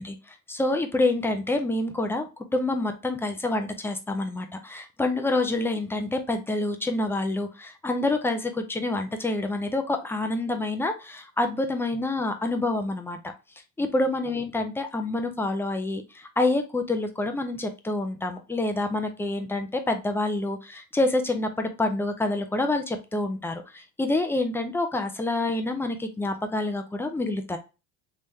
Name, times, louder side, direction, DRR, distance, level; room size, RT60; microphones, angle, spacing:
voice 1, 0.0-13.2 13.8-27.6, left 2 dB, 5° left, 6 dB, 0.3 m, -27 dB
3.6 x 3.3 x 2.6 m, 0.28 s
supercardioid pair, 100°, 47 cm